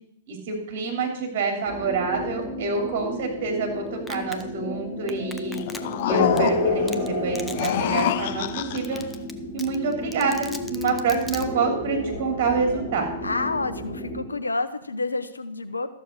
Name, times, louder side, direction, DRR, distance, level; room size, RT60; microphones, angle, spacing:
voice 1, 0.3-5.6 6.0-8.4 8.7-9.0 9.5-13.1, right 4 dB, 50° right, 3 dB, 3.0 m, -27 dB
sound 1, 1.7-14.2, left 2 dB, 30° left, 6.0 m, -30 dB
Domestic sounds home sounds, 4.1-4.4 5.1-6.0 6.4-6.5 6.9-7.1 7.3-7.7 8.0-8.1 8.5-8.6 8.8-9.3 9.6-11.4, left 2 dB, 10° left, 0.8 m, -37 dB
sound 2, 5.5-6.9 7.4-9.0, left 12 dB, 50° left, 0.5 m, -27 dB
voice 2, 13.2-15.9, left 3 dB, 85° left, 10 dB, 1.0 m, -29 dB
13.0 x 6.9 x 6.5 m, 0.76 s
figure-of-eight pair, 105°, 0 cm